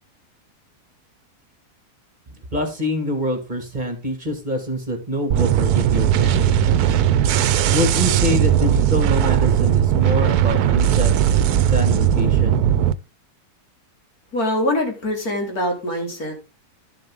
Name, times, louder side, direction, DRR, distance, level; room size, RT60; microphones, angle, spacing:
voice 1, 2.5-6.5 7.7-11.1 11.7-12.6, equal, 30° right, 5 dB, 2.1 m, -25 dB
sound 1, 5.3-12.9, right 10 dB, 80° right, 1.2 m, -18 dB
voice 2, 14.3-16.4, left 1 dB, 70° left, 2 dB, 3.4 m, -23 dB
11.5 x 7.3 x 3.6 m, 0.30 s
omnidirectional pair, 1.6 m